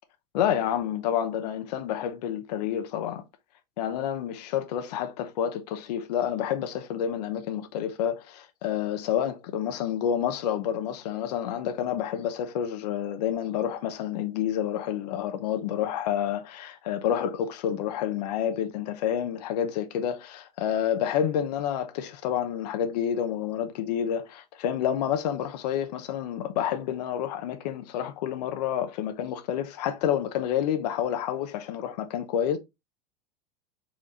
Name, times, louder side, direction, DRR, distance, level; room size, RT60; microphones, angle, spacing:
voice 1, 0.3-3.2 3.8-32.6, left 9 dB, 80° left, 0.9 m, -29 dB
4.5 x 4.4 x 2.5 m
supercardioid pair, 115°, 20 cm